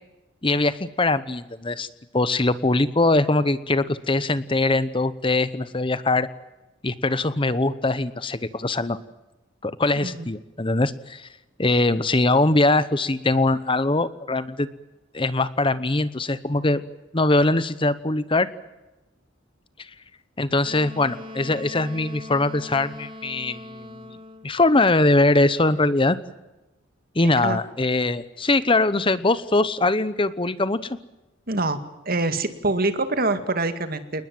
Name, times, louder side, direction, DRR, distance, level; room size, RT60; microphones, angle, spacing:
voice 1, 0.4-1.9 2.1-6.3 6.8-9.0 9.6-11.3 11.6-14.7 15.1-16.8 17.1-18.5 19.8-19.9 20.4-23.9 24.4-26.2 27.1-31.0, left 2 dB, 25° left, 14 dB, 0.9 m, -22 dB
Wind instrument woodwind instrument, 20.6-24.6, left 1 dB, 25° right, 2.3 m, -40 dB
voice 2, 27.2-27.6 31.5-31.8 32.1-34.2, right 2 dB, 45° right, 9 dB, 2.2 m, -25 dB
29.0 x 20.0 x 7.8 m, 1.0 s
head